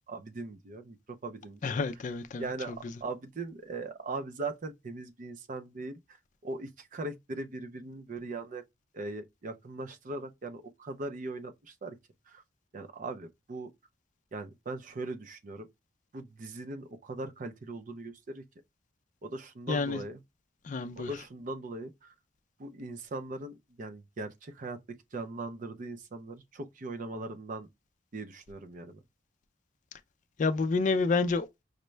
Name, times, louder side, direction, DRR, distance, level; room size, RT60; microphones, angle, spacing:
voice 1, 0.1-1.8 2.4-2.8 3.0-6.0 6.4-8.6 8.9-12.0 12.3-12.4 12.7-13.7 14.3-15.7 16.1-18.4 19.2-20.2 20.9-22.1 22.6-27.7 28.1-29.0, right 2 dB, 45° right, 0.5 m, -40 dB
voice 2, 1.6-2.4 19.7-20.0 20.7-21.1 30.4-31.5, left 4 dB, 45° left, 0.4 m, -28 dB
5.0 x 2.2 x 3.1 m
head